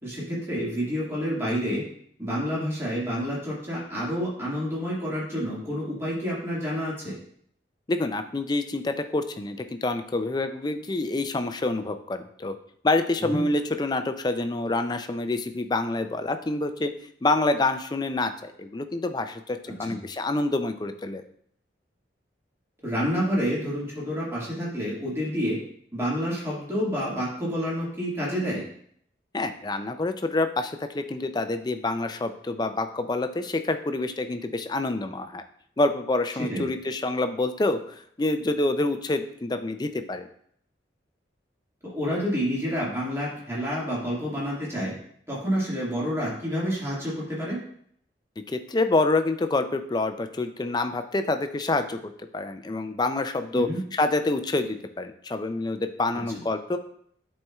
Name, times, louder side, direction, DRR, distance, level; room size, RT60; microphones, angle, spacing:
voice 1, 0.0-1.8 2.2-7.1 13.3-13.4 19.8-20.0 22.8-25.6 25.9-28.6 36.5-36.6 41.8-44.9 45.3-47.6 53.5-53.8, equal, 15° right, -6 dB, 1.8 m, -28 dB
voice 2, 7.9-12.5 12.8-16.9 17.2-21.2 29.3-35.4 35.8-37.8 38.2-40.3 48.5-56.8, left 2 dB, 20° left, 8 dB, 0.4 m, -27 dB
10.5 x 4.3 x 2.3 m, 0.66 s
head